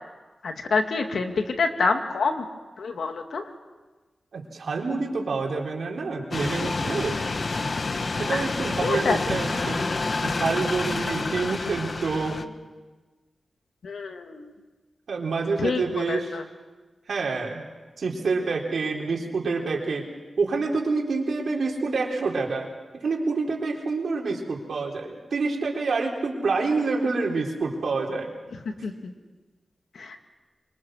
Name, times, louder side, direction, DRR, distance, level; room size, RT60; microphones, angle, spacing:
voice 1, 0.4-2.4 2.8-3.4 8.2-8.4 8.8-9.2 13.8-14.5 15.6-16.4 28.8-29.1 30.0-30.2, left 4 dB, 90° left, 5 dB, 2.1 m, -27 dB
voice 2, 4.3-7.2 8.1-9.8 10.2-12.4 15.1-16.4 17.1-17.6 18.0-20.1 20.4-22.7 23.0-28.3, right 4 dB, 80° right, 0 dB, 4.0 m, -27 dB
sound 1, 6.3-12.4, left 3 dB, 50° left, 1.1 m, -28 dB
26.0 x 25.5 x 6.4 m, 1.2 s
wide cardioid pair, 110°, 0 cm